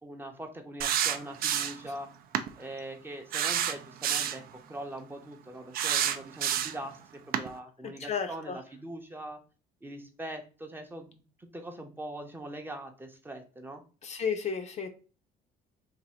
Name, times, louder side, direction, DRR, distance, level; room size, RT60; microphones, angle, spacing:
voice 1, 0.0-2.1 2.6-9.4 9.8-13.8, right 1 dB, 10° right, 0.6 m, -42 dB
sound 1, 0.8-1.9 2.3-2.5 3.3-4.4 5.7-6.9 7.3-7.5, right 9 dB, 60° right, 0.4 m, -28 dB
voice 2, 8.0-8.6 14.0-14.9, left 6 dB, 40° left, 0.5 m, -32 dB
2.6 x 2.6 x 4.2 m
cardioid pair, 110°, 17 cm